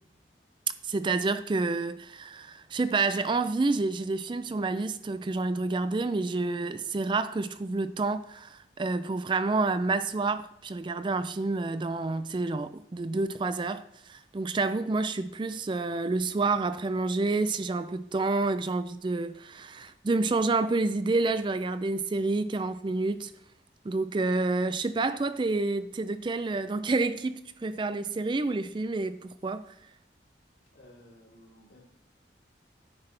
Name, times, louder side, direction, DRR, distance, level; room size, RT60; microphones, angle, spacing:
voice 1, 0.8-23.3 23.8-29.6, right 3 dB, 25° right, 0.4 m, -29 dB
voice 2, 30.7-31.8, left 1 dB, 90° left, 2.9 m, -55 dB
9.6 x 5.8 x 3.3 m
head